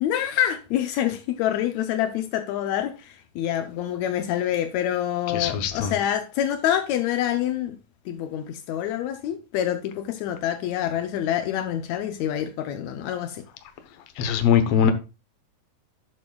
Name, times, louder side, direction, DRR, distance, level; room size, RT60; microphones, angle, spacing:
voice 1, 0.0-7.7 8.1-13.4, left 11 dB, 85° left, 1.6 m, -26 dB
voice 2, 5.3-5.9 14.2-14.9, left 7 dB, 65° left, 1.6 m, -21 dB
12.0 x 7.5 x 2.3 m
omnidirectional pair, 4.0 m